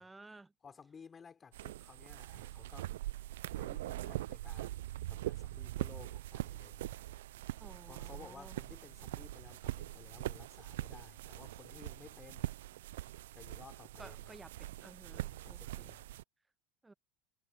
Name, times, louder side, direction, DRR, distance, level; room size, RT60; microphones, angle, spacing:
voice 1, 0.0-0.5 7.6-8.6 14.0-15.9 16.8-16.9, right 3 dB, 10° right, 1.2 m, -55 dB
voice 2, 0.6-2.9 3.5-7.0 7.9-12.6 13.3-14.4 15.1-16.2, left 6 dB, 25° left, 4.6 m, -56 dB
sound 1, 1.5-16.2, right 15 dB, 70° right, 0.8 m, -42 dB
hypercardioid pair, 80°, 0 cm